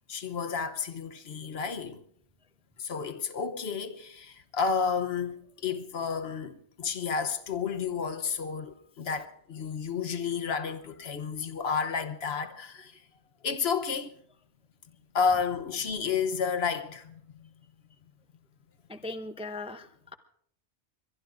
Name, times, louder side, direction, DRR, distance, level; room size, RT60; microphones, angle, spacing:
voice 1, 0.1-2.0 2.8-13.0 13.4-14.1 15.1-17.5, left 6 dB, 65° left, 1.1 m, -31 dB
voice 2, 18.9-20.1, left 2 dB, 5° right, 0.5 m, -39 dB
23.5 x 22.0 x 2.5 m
omnidirectional pair, 1.2 m